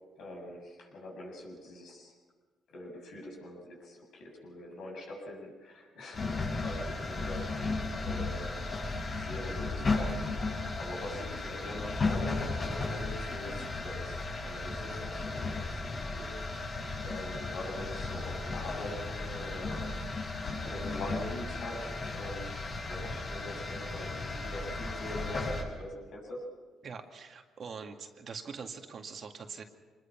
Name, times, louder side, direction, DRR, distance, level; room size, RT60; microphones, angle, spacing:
voice 1, 0.2-2.1 2.7-6.3 6.6-8.6 9.1-16.4 17.0-20.3 20.6-26.4, left 1 dB, 75° left, -1 dB, 7.4 m, -44 dB
sound 1, 6.1-25.6, left 3 dB, 45° left, 6.5 m, -35 dB
voice 2, 26.8-29.6, right 5 dB, 55° right, 4 dB, 2.1 m, -43 dB
25.5 x 21.0 x 6.0 m, 1.4 s
cardioid pair, 75°, 0 cm